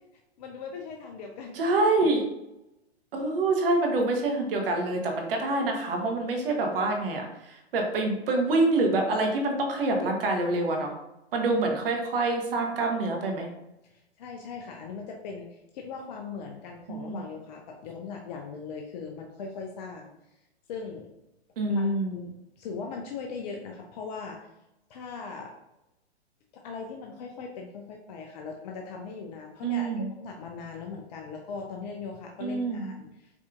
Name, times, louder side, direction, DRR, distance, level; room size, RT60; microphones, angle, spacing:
voice 1, 0.4-1.6 3.2-3.3 13.8-20.1 20.7-21.1 21.7-21.8 22.1-24.5 24.9-25.5 26.5-33.4, left 5 dB, 40° left, 1 dB, 0.5 m, -39 dB
voice 2, 1.5-2.2 3.1-10.9 11.3-13.5 16.9-17.2 21.6-22.2 29.6-30.1 32.4-32.9, right 2 dB, 55° right, 3 dB, 1.0 m, -26 dB
4.8 x 2.7 x 2.4 m, 0.90 s
hypercardioid pair, 120°, 33 cm